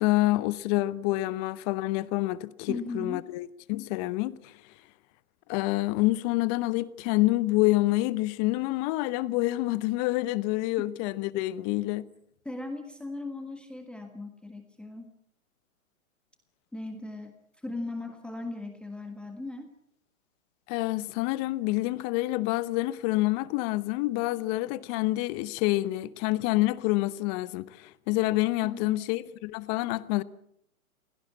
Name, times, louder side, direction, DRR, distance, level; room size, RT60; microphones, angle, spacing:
voice 1, 0.0-4.5 5.5-12.1 20.7-30.2, left 19 dB, 30° left, 0.9 m, -27 dB
voice 2, 2.7-3.3 12.4-15.0 16.7-19.7 28.6-29.0, left 2 dB, ahead, 1.5 m, -38 dB
21.5 x 17.5 x 8.5 m
hypercardioid pair, 125°, 41 cm